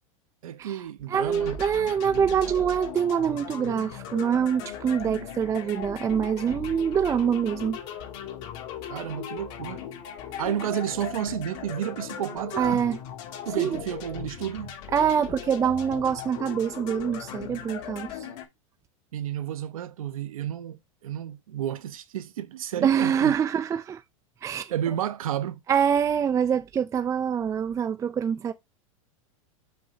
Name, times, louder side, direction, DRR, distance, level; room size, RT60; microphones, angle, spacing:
voice 1, 0.4-1.6 8.8-9.9 10.4-12.8 13.5-14.7 19.1-23.3 24.7-25.6, right 10 dB, 85° right, 0.8 m, -31 dB
voice 2, 1.1-7.8 12.6-13.0 13.6-13.8 14.9-18.3 22.8-24.0 24.4-24.7 25.7-28.5, right 8 dB, 15° right, 0.4 m, -25 dB
sound 1, 1.3-18.5, left 9 dB, 60° left, 2.2 m, -38 dB
5.8 x 4.9 x 4.0 m
hypercardioid pair, 120°, 18 cm